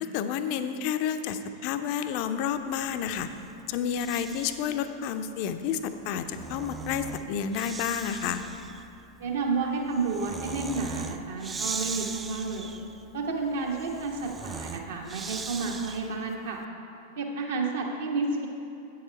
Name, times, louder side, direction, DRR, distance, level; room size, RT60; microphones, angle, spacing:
voice 1, 0.0-3.3 3.7-8.4, left 8 dB, 45° left, 9 dB, 0.4 m, -30 dB
Breathing, 2.8-4.8 6.0-16.3, right 5 dB, 15° right, 0.3 m, -40 dB
voice 2, 9.2-12.7 13.1-16.6 17.2-18.5, right 3 dB, 60° right, 1 dB, 1.1 m, -31 dB
8.6 x 7.0 x 4.5 m, 2.8 s
figure-of-eight pair, 90°, 0 cm